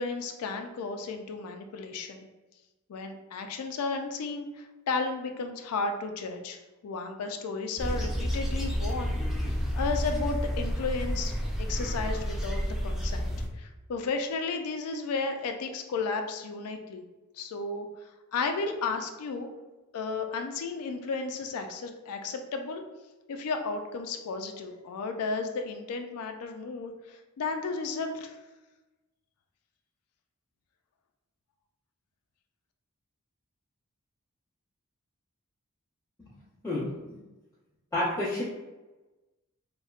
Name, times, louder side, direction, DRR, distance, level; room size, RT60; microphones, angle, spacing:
voice 1, 0.0-2.3 2.9-9.2 9.7-17.0 17.3-19.5 19.9-22.8 23.3-28.4, left 4 dB, 85° left, 5 dB, 0.4 m, -33 dB
at the farm, 7.8-13.5, equal, ahead, 0.3 m, -30 dB
voice 2, 36.6-37.2 37.9-38.4, left 1 dB, 15° left, -12 dB, 0.9 m, -30 dB
4.0 x 2.1 x 2.4 m, 1.1 s
head